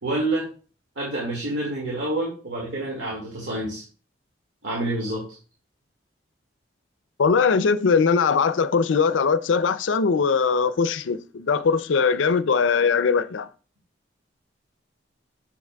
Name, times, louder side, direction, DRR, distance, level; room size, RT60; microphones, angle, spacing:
voice 1, 0.0-0.5 1.0-3.8 4.6-5.3, right 1 dB, 85° right, 2.1 m, -28 dB
voice 2, 7.2-13.5, left 5 dB, 85° left, 0.5 m, -21 dB
7.2 x 6.9 x 2.3 m
head